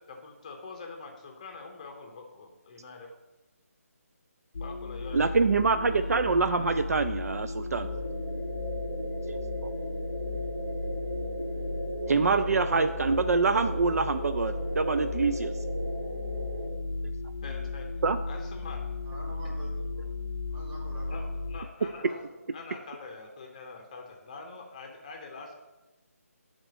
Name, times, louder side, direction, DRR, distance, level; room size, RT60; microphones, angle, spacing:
voice 1, 0.0-3.1 4.6-5.3 5.8-7.1 17.4-17.9 18.3-18.8 21.1-22.2 22.5-25.5, left 4 dB, 25° left, 2 dB, 0.7 m, -45 dB
sound 1, 4.5-21.6, left 3 dB, 60° left, 0.5 m, -35 dB
voice 2, 5.1-7.9 9.3-9.4 12.1-15.5 18.0-18.2, right 4 dB, 70° right, 10 dB, 0.4 m, -25 dB
sound 2, 7.8-16.7, right 2 dB, 55° right, 2.3 m, -37 dB
voice 3, 19.0-20.1 20.5-21.5 21.8-22.5, right 1 dB, 35° right, -4 dB, 2.3 m, -47 dB
8.9 x 3.7 x 5.0 m, 1.1 s
figure-of-eight pair, 165°, 8 cm